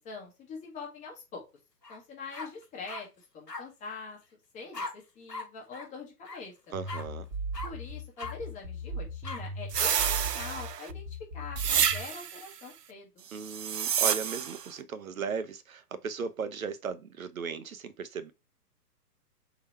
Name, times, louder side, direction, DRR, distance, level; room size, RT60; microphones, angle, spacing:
voice 1, 0.0-1.4 1.9-4.2 4.5-6.7 7.6-13.3, left 4 dB, 15° left, 1.3 m, -44 dB
sound 1, 1.8-2.0 2.3-3.0 3.5-3.6 4.7-4.9 5.3-5.4 5.7-5.9 6.2-6.4 6.9-7.0 7.5-7.7 8.2-8.3 9.2-9.4, left 3 dB, 85° left, 1.5 m, -38 dB
sound 2, 6.7-12.1, right 1 dB, 15° right, 1.2 m, -38 dB
voice 2, 6.7-7.3 13.3-18.3, right 6 dB, 60° right, 0.9 m, -36 dB
sound 3, 9.7-10.9 11.6-12.4 13.4-14.7, right 8 dB, 80° right, 0.6 m, -29 dB
3.9 x 3.0 x 4.3 m
figure-of-eight pair, 125°, 48 cm